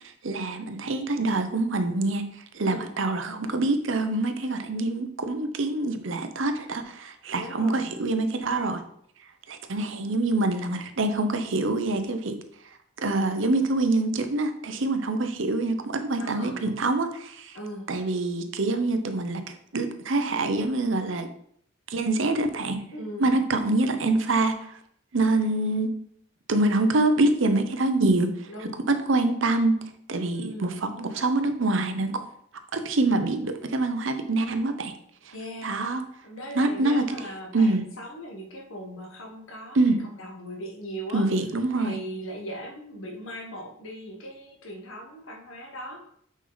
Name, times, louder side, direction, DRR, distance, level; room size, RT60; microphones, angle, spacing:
voice 1, 0.2-2.2 2.5-8.8 9.5-12.4 13.0-17.6 17.9-19.4 19.7-21.3 21.9-22.8 23.2-24.6 25.1-25.9 26.5-28.3 28.9-29.8 30.1-32.2 32.7-34.9 35.6-36.0 36.5-37.2 37.5-37.8 39.7-40.0 41.1-41.9, right 2 dB, 65° right, 7 dB, 0.8 m, -25 dB
voice 2, 2.6-3.0 7.3-7.9 16.2-16.8 17.5-17.9 22.9-23.3 28.5-28.8 30.3-30.8 35.3-41.3 41.8-46.2, equal, 75° left, 2 dB, 1.4 m, -39 dB
6.3 x 5.4 x 4.0 m, 0.66 s
head